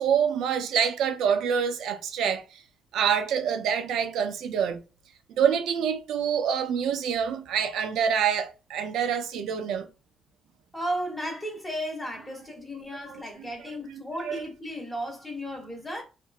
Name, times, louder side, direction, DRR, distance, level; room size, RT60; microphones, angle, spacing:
voice 1, 0.0-2.4 2.9-4.8 5.4-9.9 14.2-14.4, right 7 dB, 85° right, 0.4 m, -26 dB
voice 2, 10.7-16.0, equal, 5° left, 0.8 m, -34 dB
2.8 x 2.5 x 2.3 m
cardioid pair, 170°, 0 cm